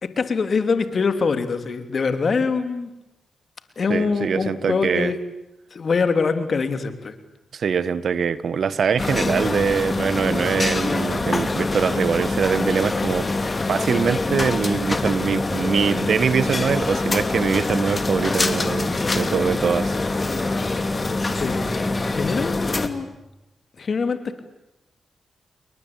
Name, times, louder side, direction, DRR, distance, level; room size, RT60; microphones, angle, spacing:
voice 1, 0.0-2.9 3.8-5.2 5.7-7.1 21.3-21.8 22.1-23.1 23.8-24.4, left 5 dB, 55° left, 9 dB, 3.2 m, -24 dB
voice 2, 3.9-5.1 7.5-13.3 13.7-20.1, right 6 dB, 65° right, 16 dB, 1.4 m, -23 dB
sound 1, 9.0-22.9, left 2 dB, 40° left, 2.9 m, -24 dB
29.5 x 22.5 x 8.9 m, 0.91 s
supercardioid pair, 40°, 0 cm